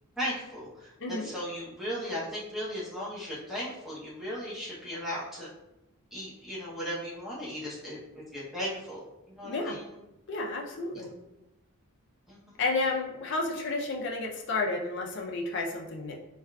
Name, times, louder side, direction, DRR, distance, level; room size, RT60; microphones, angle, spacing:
voice 1, 0.2-5.5 6.1-8.0 8.3-9.1 9.4-9.9 10.9-11.0 12.3-12.4, equal, ahead, -8 dB, 0.7 m, -36 dB
voice 2, 9.4-9.8 10.3-11.1 12.6-16.1, left 3 dB, 55° left, 0 dB, 0.5 m, -31 dB
3.5 x 2.4 x 2.2 m, 0.93 s
head